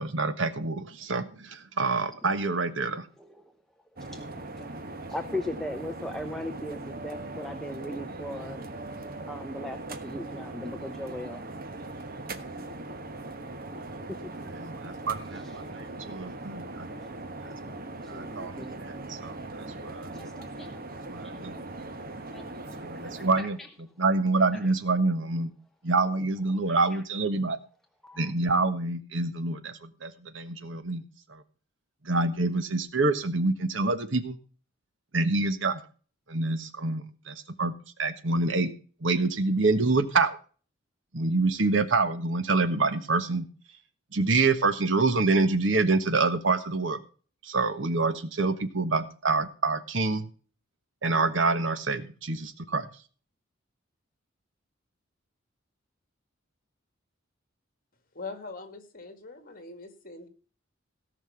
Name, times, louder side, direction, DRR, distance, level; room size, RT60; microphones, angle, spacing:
voice 1, 0.0-3.1 14.6-16.9 17.4-17.6 18.1-19.4 19.8-20.1 21.1-21.6 22.8-23.6 24.0-25.5 25.8-27.6 28.2-31.0 31.3-31.4 32.0-34.4 35.1-35.8 36.3-37.7 38.0-38.7 39.0-40.3 41.1-43.5 44.1-47.0 47.4-50.3 51.0-52.9, right 3 dB, 70° right, 11 dB, 1.3 m, -26 dB
voice 2, 3.2-3.5 4.1-4.8 5.1-8.6 9.3-11.5 14.1-14.5 15.3-15.6 17.7-17.8 18.0-18.9 19.6-19.8 20.1-20.7 21.0-21.3 22.3-23.7 24.5-24.7 26.2-27.0 28.0-28.3, left 1 dB, ahead, 5 dB, 0.7 m, -39 dB
sound 1, 4.0-23.4, right 2 dB, 50° right, 1.3 m, -40 dB
voice 3, 58.1-60.3, left 3 dB, 45° left, 8 dB, 2.2 m, -42 dB
17.5 x 5.9 x 5.8 m, 0.39 s
head